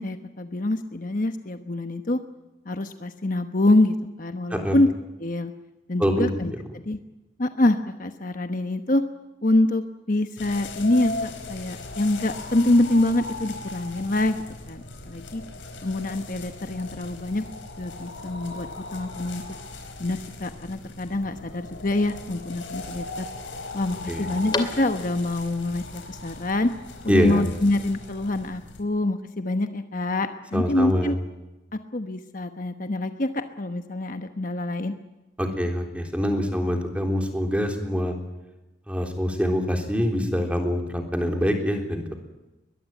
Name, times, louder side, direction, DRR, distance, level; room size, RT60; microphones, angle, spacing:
voice 1, 0.0-2.2 2.6-4.9 5.2-5.5 5.9-7.0 7.4-9.0 9.4-15.4 15.8-17.4 17.8-19.4 20.0-23.3 23.7-26.7 27.0-31.2 31.7-34.9, left 2 dB, 45° left, 7 dB, 1.1 m, -25 dB
sound 1, 10.4-28.8, left 2 dB, 80° left, 4.8 m, -38 dB
sound 2, 16.9-25.4, left 3 dB, 25° left, 2.6 m, -40 dB
voice 2, 27.1-27.4 30.5-31.2 35.4-38.1 38.9-42.1, equal, 5° right, 3 dB, 3.6 m, -24 dB
22.0 x 22.0 x 9.2 m, 1.0 s
head